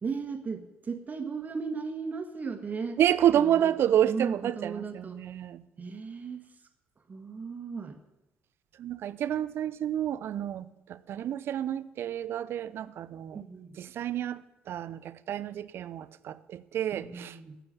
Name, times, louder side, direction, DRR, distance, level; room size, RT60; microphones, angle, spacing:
voice 1, 0.0-3.0 3.4-3.8 4.0-5.2 5.8-6.5 7.1-8.0 13.3-13.8 16.9-17.6, right 5 dB, 35° right, 6 dB, 1.6 m, -36 dB
voice 2, 3.0-5.6 8.8-13.4 13.8-17.4, right 10 dB, 55° right, 15 dB, 0.7 m, -29 dB
15.0 x 7.6 x 9.7 m, 0.96 s
figure-of-eight pair, 45°, 5 cm